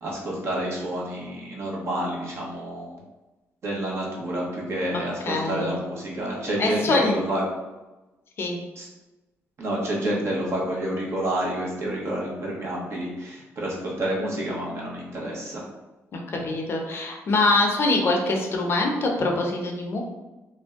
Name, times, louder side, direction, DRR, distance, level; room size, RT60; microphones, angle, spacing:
voice 1, 0.0-3.0 3.6-7.4 8.8-8.9 9.6-15.6, right 1 dB, 60° right, -3 dB, 0.9 m, -29 dB
voice 2, 4.9-5.8 6.6-7.2 8.4-8.6 16.1-20.0, left 2 dB, 50° left, 1 dB, 0.6 m, -24 dB
2.6 x 2.2 x 3.5 m, 1.1 s
cardioid pair, 90°, 5 cm